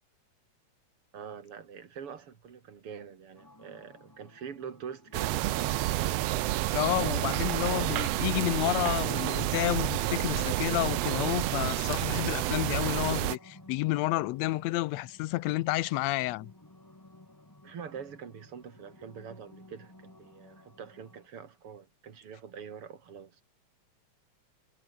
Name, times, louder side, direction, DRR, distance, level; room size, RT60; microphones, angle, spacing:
voice 1, 1.1-6.2 7.7-7.9 17.6-23.4, right 7 dB, 50° right, 3.1 m, -45 dB
sound 1, 3.4-21.3, left 1 dB, 10° left, 1.3 m, -55 dB
sound 2, 5.1-13.4, right 16 dB, 75° right, 1.6 m, -29 dB
voice 2, 6.7-16.5, left 18 dB, 80° left, 1.7 m, -30 dB
omnidirectional pair, 3.4 m